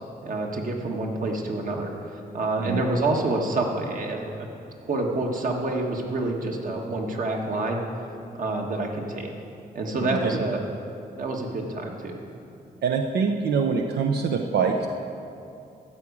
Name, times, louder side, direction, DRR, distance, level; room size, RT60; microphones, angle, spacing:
voice 1, 0.2-1.9 2.3-4.5 4.9-7.8 8.4-9.3 9.7-10.6 11.2-12.2, right 2 dB, 55° right, 1 dB, 1.5 m, -27 dB
voice 2, 10.0-10.4 12.8-14.9, right 5 dB, 90° right, 3 dB, 0.6 m, -24 dB
13.5 x 4.9 x 8.4 m, 2.6 s
cardioid pair, 115°, 17 cm